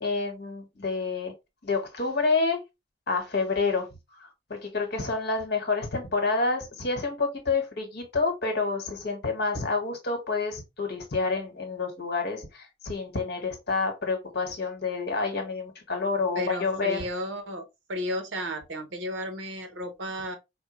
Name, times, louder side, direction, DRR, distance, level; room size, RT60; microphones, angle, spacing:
voice 1, 0.0-1.3 1.6-2.6 3.1-3.9 4.2-17.1, left 4 dB, 60° left, 1.2 m, -28 dB
voice 2, 16.3-17.6 17.9-20.4, equal, 75° right, 1.0 m, -33 dB
4.4 x 2.2 x 3.0 m
head